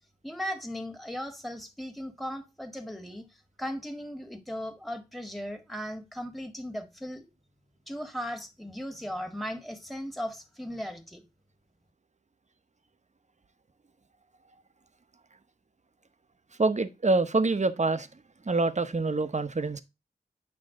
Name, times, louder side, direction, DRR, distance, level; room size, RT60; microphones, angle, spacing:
voice 1, 0.2-7.3 7.9-11.2, equal, ahead, 1.7 m, -37 dB
voice 2, 16.6-18.1 18.4-19.8, right 3 dB, 45° right, 1.0 m, -26 dB
8.6 x 5.8 x 3.7 m
cardioid pair, 45°, 16 cm